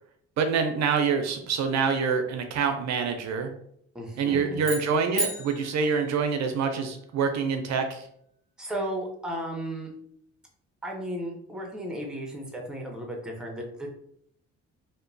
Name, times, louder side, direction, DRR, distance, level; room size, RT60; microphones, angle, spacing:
voice 1, 0.4-3.5 4.2-8.0, right 5 dB, 65° right, 6 dB, 0.5 m, -26 dB
voice 2, 3.9-4.7 5.9-6.0 8.6-9.9 10.8-13.9, equal, ahead, 1 dB, 0.6 m, -35 dB
sound 1, 4.6-6.9, right 1 dB, 20° left, 1.0 m, -35 dB
2.9 x 2.1 x 2.5 m, 0.70 s
cardioid pair, 90°, 30 cm